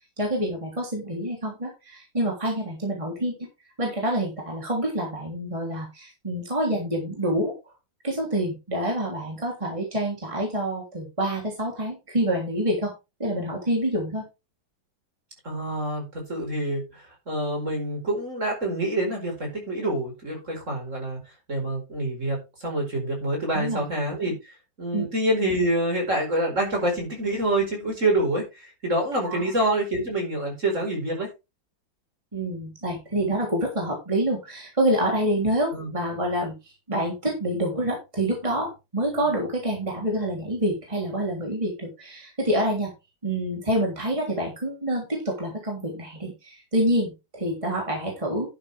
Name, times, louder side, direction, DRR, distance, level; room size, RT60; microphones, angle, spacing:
voice 1, 0.2-3.4 3.8-7.5 8.0-12.9 13.2-14.2 23.5-23.8 24.9-25.1 29.3-29.4 32.3-36.5 36.9-42.9 43.2-48.5, right 1 dB, 15° right, -1 dB, 3.4 m, -27 dB
voice 2, 15.4-21.2 21.5-31.3 35.7-35.9, right 1 dB, 40° right, 1 dB, 5.1 m, -27 dB
11.5 x 8.9 x 3.5 m, 0.26 s
omnidirectional pair, 2.1 m